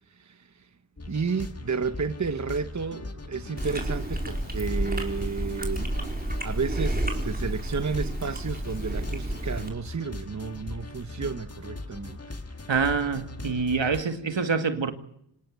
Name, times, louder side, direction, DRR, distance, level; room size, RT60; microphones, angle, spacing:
voice 1, 0.1-0.7 1.1-12.2, right 5 dB, 40° right, 1.0 m, -32 dB
sound 1, 1.0-14.0, left 2 dB, 30° left, 1.9 m, -40 dB
Chewing mastication, 3.6-9.7, right 1 dB, 20° right, 4.5 m, -31 dB
voice 2, 12.7-14.9, right 5 dB, 75° right, 2.3 m, -26 dB
26.0 x 19.5 x 9.4 m
wide cardioid pair, 65°, 45 cm